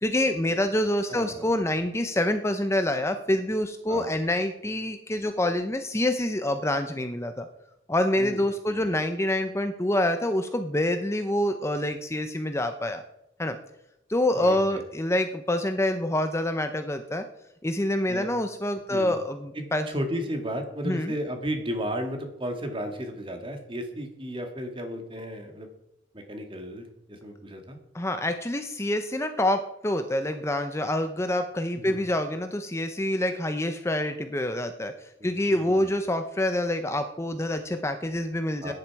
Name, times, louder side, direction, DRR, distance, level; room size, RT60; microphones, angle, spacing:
voice 1, 0.0-7.5 7.9-13.0 13.4-13.6 14.1-17.3 17.6-19.9 20.8-21.1 27.9-38.7, left 1 dB, 15° left, 8 dB, 0.7 m, -26 dB
voice 2, 1.1-1.5 3.9-4.2 8.2-8.9 14.3-14.8 18.1-18.3 18.9-19.2 19.5-25.7 26.1-27.8 31.8-32.0 35.2-35.9 38.6-38.7, equal, 25° right, 5 dB, 2.0 m, -34 dB
16.0 x 10.5 x 4.8 m, 0.85 s
head